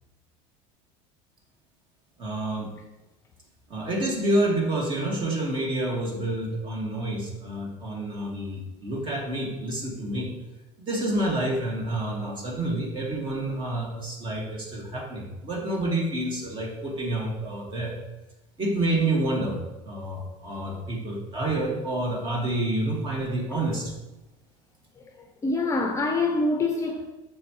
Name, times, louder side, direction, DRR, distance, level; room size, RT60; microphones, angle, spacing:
voice 1, 2.2-2.7 3.7-10.3 10.8-18.0 18.6-19.6 19.8-23.9, right 1 dB, 30° right, 2.3 m, -28 dB
voice 2, 24.9-27.1, left 3 dB, 20° left, 0.9 m, -26 dB
9.8 x 7.1 x 3.3 m
supercardioid pair, 130°, 16 cm